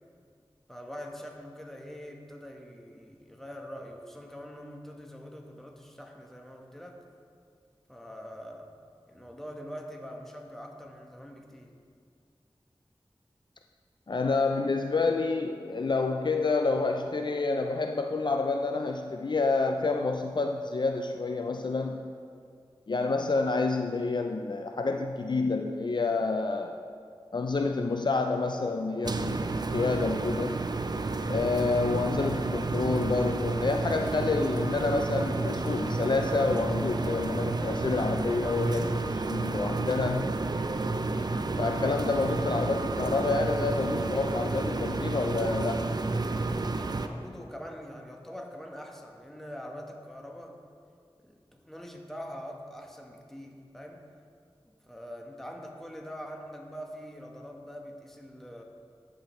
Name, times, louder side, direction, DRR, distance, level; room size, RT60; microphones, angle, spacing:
voice 1, 0.7-7.0 7.9-8.8 9.1-11.8 46.9-50.6 51.2-54.1 54.8-58.6, equal, 5° left, 1 dB, 1.0 m, -44 dB
voice 2, 14.1-22.1 22.9-26.7 27.3-30.6 31.3-40.3 41.6-45.9, left 3 dB, 55° left, 4 dB, 0.3 m, -28 dB
sound 1, 29.0-47.1, right 3 dB, 45° right, 0.4 m, -31 dB
13.0 x 4.9 x 3.1 m, 2.2 s
wide cardioid pair, 45°, 9 cm